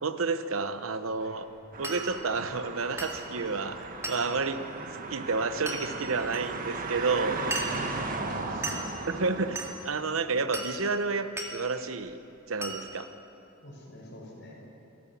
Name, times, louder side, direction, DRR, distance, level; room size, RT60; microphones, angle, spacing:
voice 1, 0.0-1.5 1.8-4.6 5.1-7.4 9.1-12.2 12.5-13.1, right 4 dB, 75° right, 10 dB, 0.9 m, -30 dB
sound 1, 1.7-9.7, right 3 dB, 40° right, 1.4 m, -36 dB
Glass, 1.8-2.1 3.0-3.2 4.0-4.3 5.7-5.8 6.3-6.4 7.5-7.8 8.6-8.9 9.6-9.7 10.5-10.8 11.4-11.6 12.6-12.8, right 2 dB, 15° right, 2.0 m, -35 dB
voice 2, 7.4-8.7 10.1-10.2 13.6-14.6, equal, 55° left, -1 dB, 5.4 m, -44 dB
28.0 x 13.5 x 7.2 m, 2.8 s
head